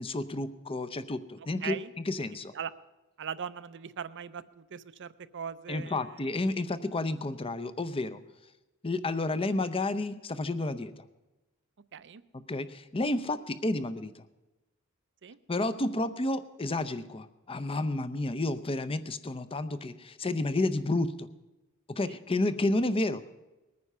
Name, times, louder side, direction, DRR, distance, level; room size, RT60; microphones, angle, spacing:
voice 1, 0.0-1.8 2.1-2.5 5.7-8.2 8.8-11.0 12.3-14.2 15.5-21.3 21.9-23.2, left 2 dB, 25° left, 12 dB, 0.6 m, -31 dB
voice 2, 1.6-1.9 2.5-2.7 3.2-6.2 11.9-12.2 15.2-15.4 22.1-22.2, right 7 dB, 55° right, 14 dB, 0.6 m, -40 dB
20.5 x 9.6 x 5.6 m, 1.1 s
head